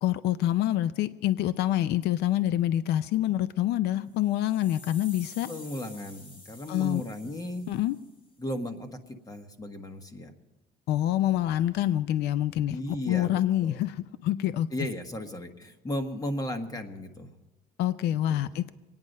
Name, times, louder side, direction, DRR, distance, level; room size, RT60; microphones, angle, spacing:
voice 1, 0.0-5.5 6.7-7.0 7.7-8.0 10.9-14.7 17.8-18.7, left 12 dB, 75° left, 14 dB, 0.5 m, -26 dB
sound 1, 4.1-8.3, left 2 dB, 60° left, 4.0 m, -50 dB
voice 2, 5.5-7.7 8.4-10.3 12.7-13.8 14.7-17.3 18.3-18.4, left 1 dB, 20° left, 6 dB, 1.5 m, -35 dB
24.0 x 9.6 x 5.3 m, 1.1 s
cardioid pair, 110°, 17 cm